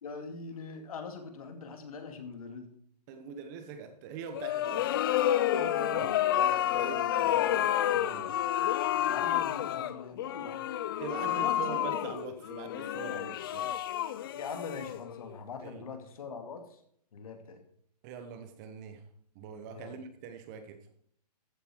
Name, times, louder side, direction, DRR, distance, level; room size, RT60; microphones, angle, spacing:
voice 1, 0.0-2.7 5.9-6.0 7.5-7.7 9.1-10.6 11.2-12.0 14.3-16.8 17.1-17.6 19.7-20.0, left 5 dB, 60° left, 6 dB, 2.6 m, -42 dB
voice 2, 3.1-5.0 5.5-8.4 11.0-13.7 15.6-15.9 18.0-19.0 19.3-20.8, right 6 dB, 25° right, 8 dB, 1.1 m, -43 dB
sound 1, 4.3-15.3, left 12 dB, 35° left, 0.5 m, -30 dB
14.5 x 8.3 x 4.6 m, 0.66 s
hypercardioid pair, 155°, 21 cm